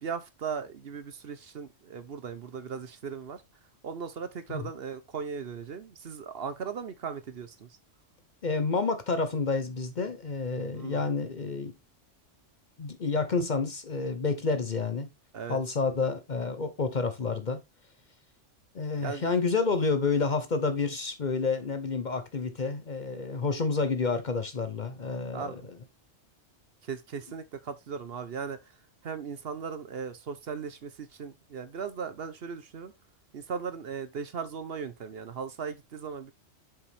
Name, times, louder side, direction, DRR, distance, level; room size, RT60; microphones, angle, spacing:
voice 1, 0.0-3.4 3.8-7.7 10.7-11.1 15.3-15.6 19.0-19.3 25.3-25.6 26.8-28.6 29.0-32.9 33.3-36.3, right 6 dB, 55° right, 0.9 m, -37 dB
voice 2, 8.4-11.7 12.8-15.1 15.5-17.6 18.7-25.6, left 4 dB, 45° left, 0.8 m, -29 dB
7.1 x 5.4 x 3.4 m
omnidirectional pair, 1.3 m